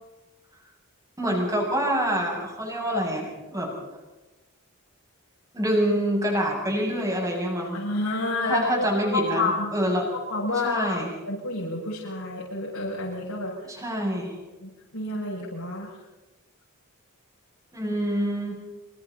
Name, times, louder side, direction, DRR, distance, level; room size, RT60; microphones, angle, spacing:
voice 1, 1.2-3.7 5.5-7.8 8.4-10.1 10.6-11.1 13.7-14.4 17.7-18.6, equal, 15° right, -1 dB, 7.3 m, -26 dB
voice 2, 7.7-9.7 10.1-13.5 14.6-15.9 17.8-17.9, left 2 dB, 75° left, -6 dB, 6.9 m, -29 dB
27.0 x 26.5 x 4.3 m, 1.1 s
head